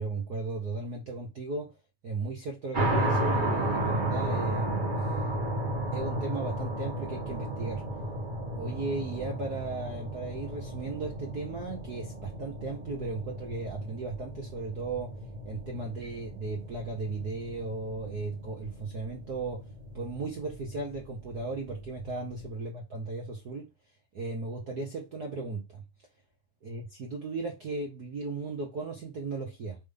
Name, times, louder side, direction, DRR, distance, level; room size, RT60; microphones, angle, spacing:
voice 1, 0.0-1.7 2.0-4.8 5.9-7.8 8.6-15.2 15.4-19.6 19.9-23.7 24.1-25.8 26.6-29.8, right 3 dB, 70° right, 0.9 m, -36 dB
sound 1, 2.7-22.5, right 1 dB, 30° right, 0.9 m, -34 dB
5.1 x 3.8 x 5.3 m
omnidirectional pair, 3.5 m